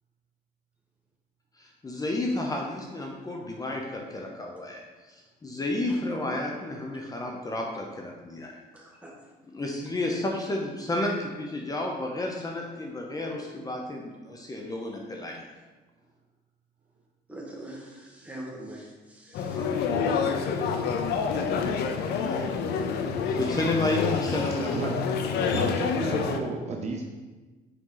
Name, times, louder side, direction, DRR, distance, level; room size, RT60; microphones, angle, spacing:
voice 1, 1.6-8.5 9.5-15.4 19.5-19.8 22.0-22.5 23.2-24.9, left 2 dB, 20° left, 0 dB, 0.8 m, -31 dB
voice 2, 8.7-9.1 17.3-19.7, right 1 dB, 10° right, -3 dB, 1.6 m, -43 dB
sound 1, 19.3-26.4, left 5 dB, 75° left, 0.6 m, -27 dB
voice 3, 24.4-24.9 25.4-27.1, right 3 dB, 40° right, 1 dB, 0.7 m, -34 dB
6.4 x 4.5 x 4.0 m, 1.3 s
cardioid pair, 110°, 17 cm